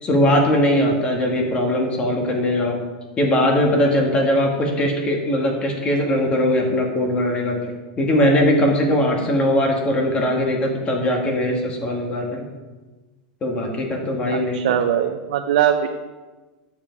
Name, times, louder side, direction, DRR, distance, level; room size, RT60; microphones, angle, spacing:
voice 1, 0.0-2.8 3.2-12.4 13.4-14.6, left 1 dB, 25° left, 1 dB, 2.1 m, -20 dB
voice 2, 14.3-15.9, right 10 dB, 75° right, 5 dB, 0.7 m, -21 dB
11.0 x 7.4 x 4.7 m, 1.3 s
supercardioid pair, 140°, 4 cm